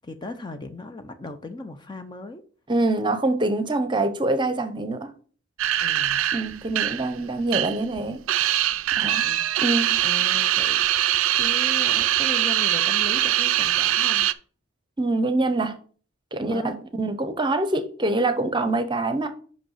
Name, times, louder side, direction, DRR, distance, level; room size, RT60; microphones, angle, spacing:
voice 1, 0.0-2.4 5.8-6.3 9.0-9.4 10.0-10.8 11.4-14.3 16.5-16.7, left 3 dB, 20° left, 0.5 m, -37 dB
voice 2, 2.7-5.1 6.3-8.2 9.0-9.2 9.6-10.0 15.0-15.7 16.3-19.3, right 2 dB, 20° right, 0.7 m, -25 dB
sound 1, 5.6-8.0 8.3-14.3, right 12 dB, 80° right, 0.4 m, -22 dB
5.4 x 5.4 x 5.6 m
head